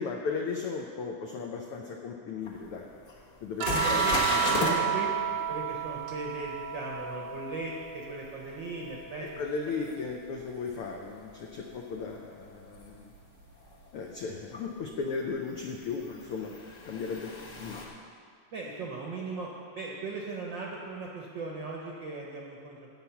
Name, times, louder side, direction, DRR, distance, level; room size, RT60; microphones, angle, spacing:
voice 1, 0.0-2.9 3.4-4.8 9.2-13.1 13.9-16.5 16.8-17.3 17.6-17.8, left 4 dB, 85° left, 1 dB, 1.2 m, -36 dB
sound 1, 2.5-2.6 3.1-3.2 3.6-4.8 9.9-10.0 12.7-12.8 14.5-14.6 16.0-17.8, left 2 dB, 45° left, 1.3 m, -31 dB
voice 2, 3.6-4.2 4.8-5.1 5.5-9.3 18.5-19.5 19.7-22.8, right 3 dB, 60° right, -2 dB, 1.2 m, -38 dB
sound 2, 3.6-8.1 8.4-10.1 11.6-11.8, right 9 dB, 90° right, 2.6 m, -32 dB
17.0 x 5.8 x 5.8 m, 2.2 s
omnidirectional pair, 3.5 m